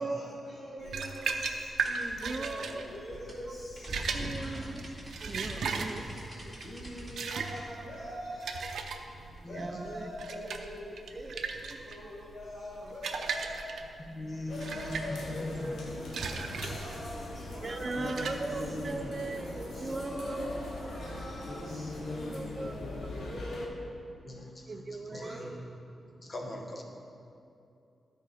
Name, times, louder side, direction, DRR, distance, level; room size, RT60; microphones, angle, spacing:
voice 1, 0.0-3.9 4.4-5.4 5.8-8.7 9.1-11.1 11.8-13.7 14.4-18.8 19.7-23.8 25.0-25.5 26.0-26.3, left 1 dB, 45° left, -6 dB, 1.4 m, -43 dB
sound 1, 0.8-19.0, right 5 dB, 75° right, 0.6 m, -38 dB
sound 2, 1.8-7.6, right 1 dB, 5° left, 2.2 m, -43 dB
voice 2, 2.2-2.6 4.1-4.8 5.2-6.2 9.5-10.1 11.1-11.9 17.6-20.5 22.3-22.7 24.7-25.6, right 3 dB, 30° right, 7 dB, 0.5 m, -38 dB
voice 3, 5.6-6.2 9.2-9.6 14.1-15.7 18.0-18.9 21.5-22.4 22.8-22.9 24.3-24.7 25.1-25.5 26.2-26.8, left 2 dB, 30° left, 2 dB, 1.0 m, -40 dB
sound 3, 14.5-23.7, left 2 dB, 75° left, 1.0 m, -42 dB
12.5 x 4.5 x 5.0 m, 2.7 s
wide cardioid pair, 130°, 0 cm